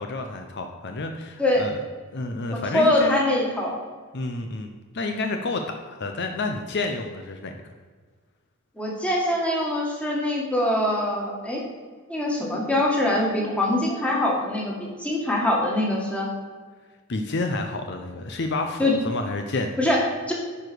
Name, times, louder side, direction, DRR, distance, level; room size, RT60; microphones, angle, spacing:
voice 1, 0.0-1.8 2.1-3.2 4.1-4.7 4.9-7.5 17.1-19.7, left 2 dB, 50° left, 5 dB, 0.7 m, -29 dB
voice 2, 2.5-3.8 8.8-11.6 12.1-16.3 18.8-19.0 19.8-20.3, left 1 dB, 5° left, -2 dB, 1.7 m, -23 dB
10.0 x 4.8 x 6.1 m, 1.5 s
head